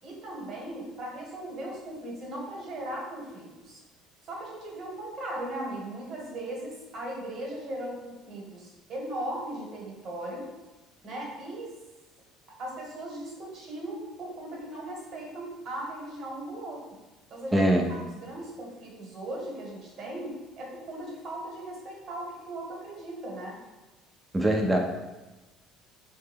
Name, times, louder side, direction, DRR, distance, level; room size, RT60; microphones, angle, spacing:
voice 1, 0.0-3.8 4.3-10.5 11.0-11.7 12.6-16.8 17.3-17.6 17.9-23.6, right 1 dB, 50° right, -2 dB, 1.3 m, -38 dB
voice 2, 17.5-17.9 24.3-24.8, right 1 dB, 15° right, 2 dB, 0.6 m, -22 dB
3.7 x 2.3 x 3.4 m, 1.1 s
hypercardioid pair, 75°, 0 cm